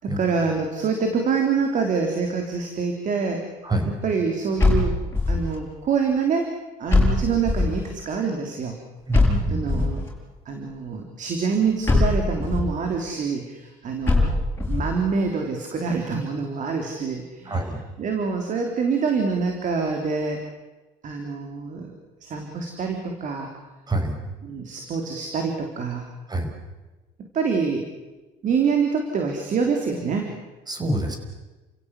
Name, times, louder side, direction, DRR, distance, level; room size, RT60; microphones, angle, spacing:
voice 1, 0.0-3.4 4.0-4.9 5.3-6.5 6.8-8.8 9.5-10.1 10.5-14.3 14.7-17.7 18.0-20.4 21.0-21.9 22.2-23.5 24.4-26.1 27.2-27.9 28.4-30.3, right 5 dB, 55° right, 4 dB, 3.5 m, -25 dB
sound 1, 4.6-5.6 6.9-7.9 9.1-10.1 11.9-12.7 14.1-14.9, left 3 dB, 15° left, 7.3 m, -21 dB
voice 2, 9.1-9.9 17.5-17.8 23.9-24.2 26.3-26.5 30.7-31.2, right 1 dB, 25° right, 6 dB, 5.4 m, -26 dB
30.0 x 16.0 x 8.4 m, 1.2 s
cardioid pair, 95°, 16 cm